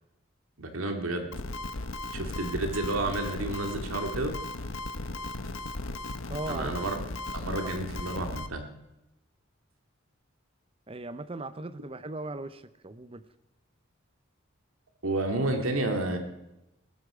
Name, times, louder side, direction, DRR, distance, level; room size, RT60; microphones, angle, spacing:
voice 1, 0.6-1.3 2.1-4.3 6.5-7.0 7.3-8.6 15.0-16.2, right 2 dB, 80° right, 4 dB, 2.4 m, -30 dB
sound 1, 1.3-8.5, left 2 dB, 75° left, 1.1 m, -36 dB
voice 2, 6.3-6.7 7.6-7.7 10.9-13.2, right 2 dB, 25° right, 13 dB, 0.7 m, -38 dB
19.0 x 13.5 x 5.0 m, 0.92 s
head